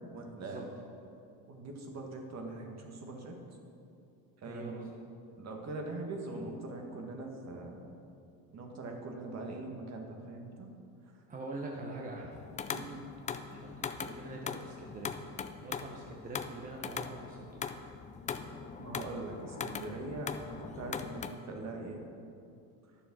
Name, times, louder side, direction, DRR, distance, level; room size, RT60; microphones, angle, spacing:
voice 1, 0.1-0.7 1.5-3.4 4.4-4.9 5.4-8.0 8.5-10.7 12.7-13.0 18.8-22.1, right 2 dB, 40° right, 2 dB, 1.7 m, -42 dB
voice 2, 4.4-4.9 11.3-12.3 13.5-15.2 15.6-17.7, right 2 dB, 20° right, -1 dB, 1.0 m, -44 dB
sound 1, 12.3-21.3, left 6 dB, 20° left, 0.4 m, -41 dB
10.0 x 6.9 x 6.2 m, 2.6 s
supercardioid pair, 110°, 40 cm